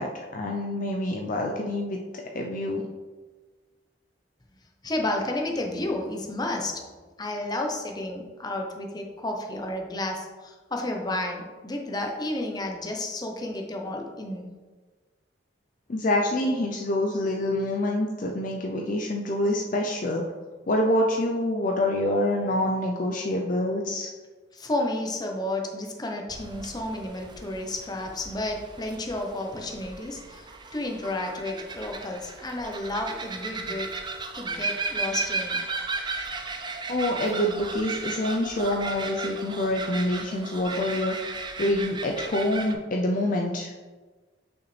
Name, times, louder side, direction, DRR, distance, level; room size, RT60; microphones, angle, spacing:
voice 1, 0.0-2.9 15.9-20.2 20.7-24.1 36.9-41.1 41.6-43.7, left 1 dB, 45° left, 1 dB, 0.5 m, -26 dB
voice 2, 4.8-6.8 7.2-14.5 24.5-30.4 30.7-33.9 34.3-35.6, left 1 dB, 20° left, 2 dB, 0.8 m, -31 dB
sound 1, 26.3-42.7, right 3 dB, 25° right, 0.5 m, -35 dB
6.4 x 5.6 x 3.3 m, 1.3 s
head